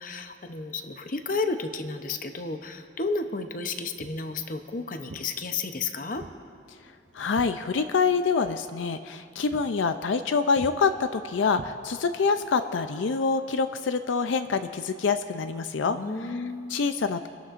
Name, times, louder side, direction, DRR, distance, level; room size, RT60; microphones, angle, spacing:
voice 1, 0.0-6.3 15.9-16.8, left 3 dB, 45° left, 7 dB, 0.7 m, -32 dB
Walk footsteps, 4.0-4.3 5.1-5.3 6.1-6.4 6.7-8.1 8.4-8.6 9.0-9.2 9.5-9.7 10.0-10.3 10.6-10.8 11.5-12.2, right 2 dB, 80° right, 0.6 m, -44 dB
voice 2, 7.1-16.0 16.7-17.3, left 5 dB, 90° left, 10 dB, 0.5 m, -26 dB
27.5 x 12.0 x 2.5 m, 2.3 s
head